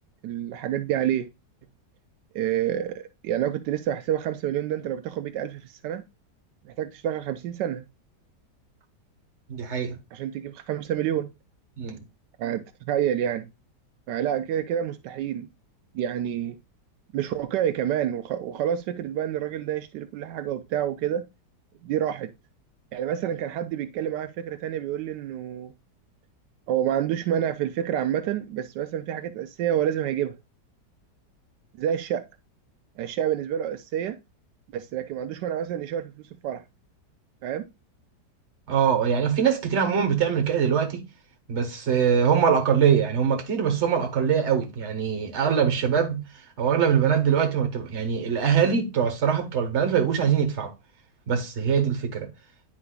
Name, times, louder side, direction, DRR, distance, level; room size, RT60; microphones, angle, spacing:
voice 1, 0.2-1.3 2.3-6.0 6.6-7.8 10.1-11.3 12.4-13.5 14.1-15.5 15.9-16.6 17.1-21.2 21.8-22.3 22.9-25.7 26.7-30.3 31.8-32.2 33.0-34.2 34.7-36.1 36.4-36.6 37.4-37.6, right 10 dB, 85° right, 1.2 m, -28 dB
voice 2, 9.5-10.0 11.8-12.0 38.7-41.1 41.5-46.2 46.6-50.7 51.3-52.3, right 7 dB, 45° right, 1.4 m, -23 dB
9.8 x 4.8 x 2.2 m
omnidirectional pair, 1.8 m